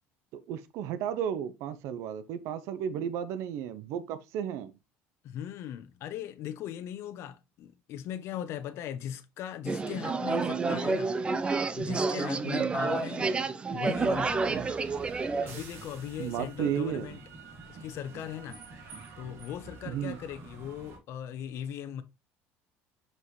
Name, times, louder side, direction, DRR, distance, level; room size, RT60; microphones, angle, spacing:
voice 1, 0.3-4.7 12.4-12.7 14.5-14.7 16.2-17.2 19.9-20.2, right 9 dB, 65° right, 0.8 m, -34 dB
voice 2, 5.2-11.1 11.4-13.4 13.7-14.7 15.4-17.2 17.7-18.6 19.2-22.0, left 10 dB, 55° left, 0.9 m, -39 dB
sound 1, 9.7-15.6, right 4 dB, 20° right, 0.6 m, -29 dB
sound 2, 13.9-21.0, right 4 dB, 50° right, 2.6 m, -48 dB
6.1 x 5.5 x 3.2 m
cardioid pair, 135°, 5 cm